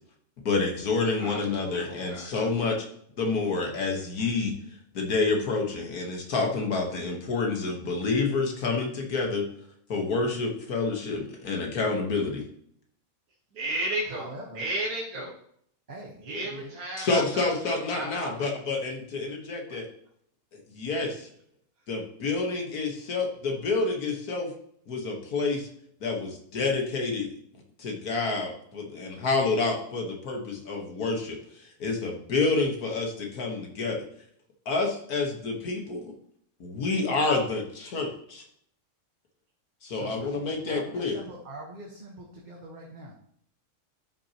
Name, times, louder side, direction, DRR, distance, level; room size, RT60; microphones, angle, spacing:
voice 1, 0.5-2.9 3.2-4.5 4.9-9.4 9.9-12.4 17.0-19.9 20.5-21.3 21.9-24.5 24.9-25.7 26.0-27.3 27.8-34.0 34.7-36.1 36.6-38.4 39.8-41.2, left 3 dB, 85° left, 1 dB, 1.9 m, -28 dB
voice 2, 1.2-2.3 13.5-14.3 14.6-15.3 16.3-18.4, right 1 dB, 75° right, -2 dB, 1.8 m, -33 dB
voice 3, 14.0-14.7 15.1-15.3 15.9-16.8 39.9-43.1, right 1 dB, 35° right, -2 dB, 1.3 m, -43 dB
12.5 x 6.0 x 2.9 m, 0.67 s
omnidirectional pair, 1.5 m